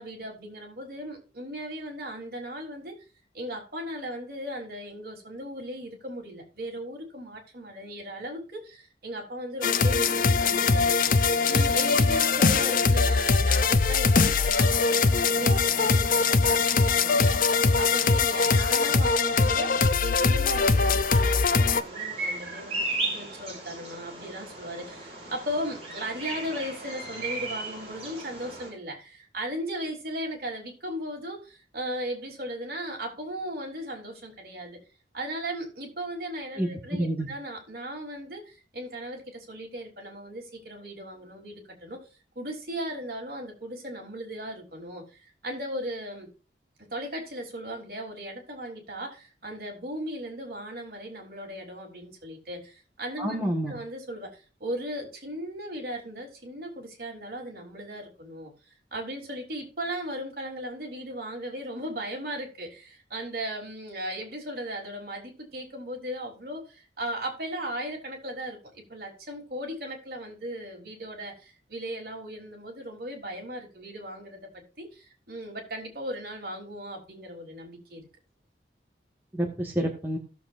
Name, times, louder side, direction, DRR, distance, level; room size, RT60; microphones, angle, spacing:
voice 1, 0.0-3.0 3.3-10.9 11.4-34.8 35.1-42.0 42.4-46.3 46.8-53.4 53.7-58.5 58.9-78.1, equal, 55° right, 3.7 m, -37 dB
sound 1, 9.6-21.8, left 4 dB, 50° left, 0.6 m, -22 dB
Bird vocalization bird call bird song, 20.5-28.7, right 2 dB, 35° right, 5.1 m, -36 dB
voice 2, 36.6-37.3 53.2-53.8 79.3-80.2, right 1 dB, 10° right, 1.7 m, -28 dB
17.0 x 7.2 x 2.7 m
head